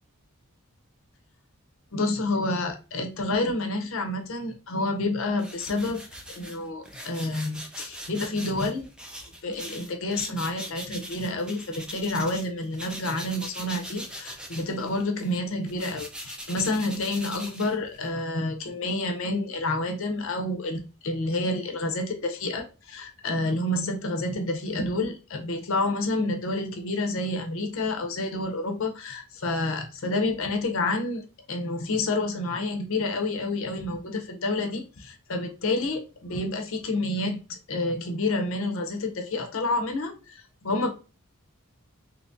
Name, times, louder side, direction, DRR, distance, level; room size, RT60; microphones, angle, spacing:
voice 1, 1.9-8.8 9.4-40.9, left 2 dB, 60° left, 5 dB, 0.6 m, -29 dB
sound 1, 5.4-12.5 12.7-18.2, equal, 5° right, 0.3 m, -41 dB
2.8 x 2.6 x 3.5 m, 0.33 s
head